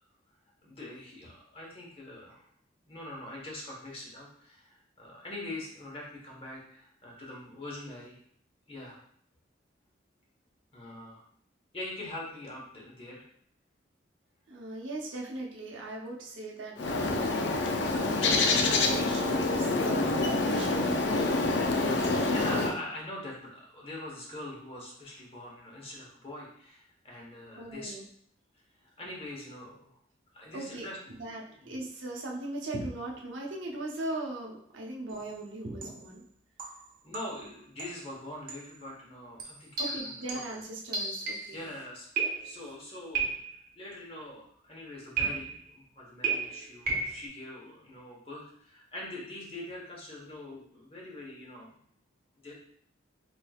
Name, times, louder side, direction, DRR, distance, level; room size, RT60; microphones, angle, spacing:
voice 1, 0.6-2.5 2.8-8.2 8.7-9.0 10.7-11.2 11.7-13.3 22.3-27.9 28.8-30.0 30.3-31.0 31.4-31.6 37.0-40.6 41.5-43.3 43.8-51.8 52.4-52.5, left 1 dB, 30° left, -2 dB, 1.0 m, -43 dB
voice 2, 14.5-22.8 27.6-28.1 30.5-30.9 31.2-36.2 37.3-37.4 39.8-41.7, right 2 dB, 80° right, -2 dB, 0.8 m, -39 dB
Bird, 16.8-22.7, left 3 dB, 65° left, 0.5 m, -27 dB
sound 1, 35.1-35.3 35.8-36.1 36.6-37.5 37.8-38.1 38.5-38.7 39.4-41.6 42.2-42.7 43.1-43.7 45.2-45.7 46.2-47.3, right 4 dB, 50° right, 0.9 m, -34 dB
4.2 x 3.4 x 2.3 m, 0.63 s
head